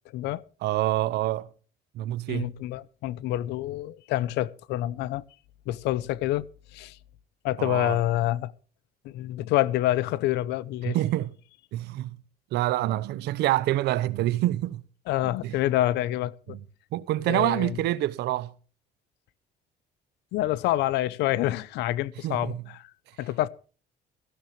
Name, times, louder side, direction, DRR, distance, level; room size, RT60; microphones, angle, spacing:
voice 1, 0.6-1.5 1.9-2.6 7.6-8.0 10.8-11.3 11.7-12.2 12.5-14.8 15.4-15.6 16.5-16.6 16.9-18.5 22.2-22.6, right 15 dB, 80° right, 0.9 m, -27 dB
voice 2, 2.3-5.2 5.7-6.5 6.7-7.0 7.4-8.5 9.0-11.0 15.1-16.6 17.3-17.8 20.3-22.9 23.2-23.5, left 14 dB, 85° left, 0.7 m, -27 dB
17.5 x 15.0 x 3.2 m
cardioid pair, 110°, 17 cm